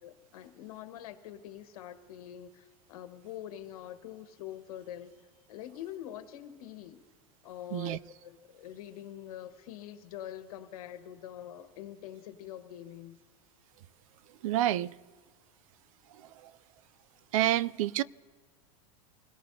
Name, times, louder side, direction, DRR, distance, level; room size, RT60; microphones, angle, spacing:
voice 1, 0.0-5.2 5.5-7.0 7.4-13.2, left 11 dB, 70° left, 1.5 m, -44 dB
voice 2, 14.4-14.9 16.2-16.5 17.3-18.0, right 14 dB, 65° right, 0.4 m, -28 dB
28.0 x 18.0 x 2.8 m
supercardioid pair, 160°, 19 cm